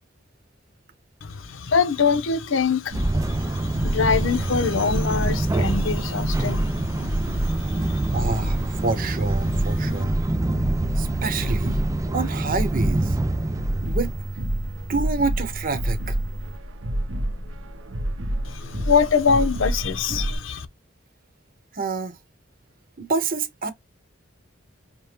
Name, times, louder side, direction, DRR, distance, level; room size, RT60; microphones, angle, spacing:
voice 1, 1.2-8.2 9.8-10.0 18.5-20.7, left 5 dB, 85° left, 0.7 m, -24 dB
sound 1, 2.9-16.6, right 2 dB, 15° right, 0.3 m, -27 dB
sound 2, 2.9-20.4, right 1 dB, 85° right, 0.8 m, -29 dB
voice 2, 8.1-8.6 8.8-10.2 11.0-11.8 12.1-13.2 13.9-14.1 14.9-16.1 21.7-22.1 23.0-23.7, right 3 dB, 45° right, 0.9 m, -27 dB
5.3 x 2.2 x 2.8 m
head